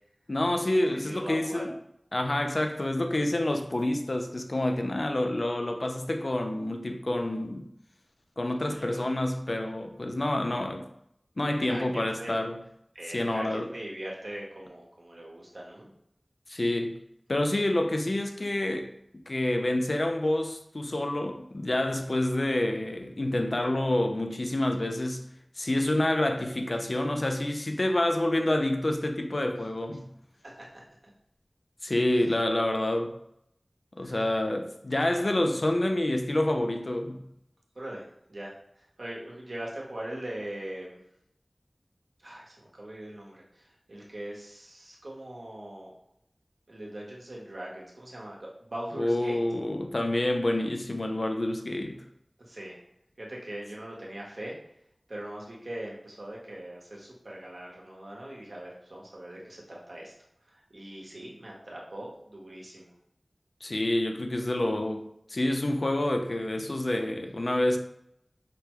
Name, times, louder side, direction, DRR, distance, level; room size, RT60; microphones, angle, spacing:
voice 1, 0.3-1.7 2.1-7.7 8.4-10.9 11.4-12.6 13.1-13.7 16.5-17.0 17.3-18.9 19.3-25.2 25.6-30.1 31.8-33.1 34.0-37.2 49.0-52.0 63.6-67.8, left 1 dB, 60° left, 0.4 m, -28 dB
voice 2, 0.9-1.7 8.6-9.0 11.7-12.4 12.9-15.9 25.9-26.0 31.0-31.1 32.1-32.3 34.0-34.3 37.7-41.0 42.2-45.9 46.7-49.4 52.4-52.8 53.2-54.6 55.1-60.1 60.5-62.9, right 1 dB, 75° right, 1.0 m, -41 dB
5.0 x 2.2 x 3.0 m
wide cardioid pair, 50°, 0 cm